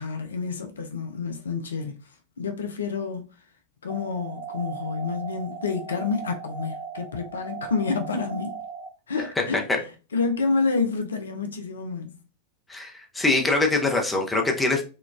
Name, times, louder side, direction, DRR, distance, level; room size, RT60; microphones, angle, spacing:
voice 1, 0.0-2.0 2.4-3.3 3.8-8.5 9.1-9.6 10.1-12.2, left 4 dB, 70° left, 0.4 m, -28 dB
sound 1, 3.9-8.9, right 6 dB, 50° right, 0.9 m, -38 dB
voice 2, 12.7-14.8, left 3 dB, 10° left, 0.6 m, -23 dB
3.7 x 2.3 x 2.3 m
figure-of-eight pair, 90°, 0 cm